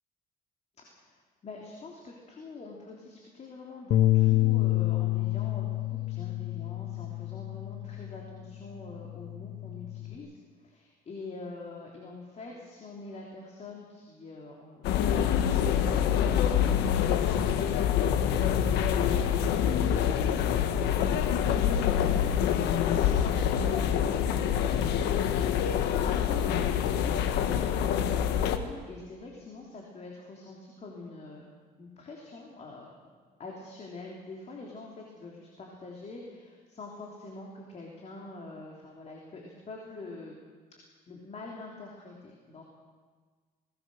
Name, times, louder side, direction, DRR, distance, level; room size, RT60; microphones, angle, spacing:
voice 1, 0.8-10.4 10.6-20.6 21.0-25.1 26.0-31.4 31.8-32.9 33.4-40.4 41.1-42.6, left 3 dB, 40° left, -1 dB, 3.5 m, -45 dB
Bass guitar, 3.9-8.4 8.8-10.2, left 16 dB, 65° left, 1.0 m, -28 dB
sound 1, 14.8-28.6, left 9 dB, 85° left, 1.4 m, -26 dB
21.5 x 19.0 x 6.5 m, 1.5 s
cardioid pair, 110°, 17 cm